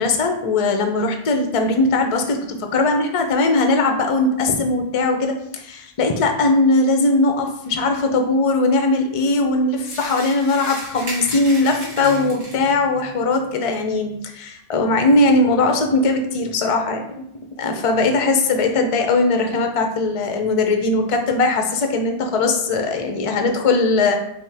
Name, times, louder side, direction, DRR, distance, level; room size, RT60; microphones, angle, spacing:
voice 1, 0.0-17.2 17.6-24.2, left 3 dB, 50° left, 4 dB, 0.4 m, -19 dB
sound 1, 9.8-12.8, right 1 dB, 70° right, 1.4 m, -34 dB
5.5 x 2.1 x 3.3 m, 0.76 s
omnidirectional pair, 1.1 m